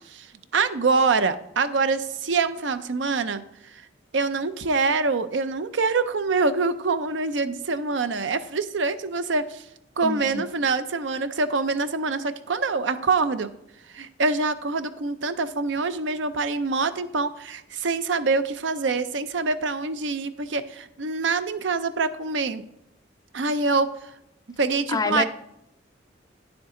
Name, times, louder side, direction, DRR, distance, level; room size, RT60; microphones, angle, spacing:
voice 1, 0.5-3.4 3.7-3.8 4.1-9.6 10.0-13.5 13.9-22.6 23.3-23.9 24.6-25.2, right 4 dB, 80° right, 11 dB, 0.6 m, -25 dB
voice 2, 10.0-10.4 24.9-25.2, left 3 dB, 20° left, 11 dB, 0.4 m, -26 dB
9.6 x 7.1 x 3.8 m, 0.80 s
head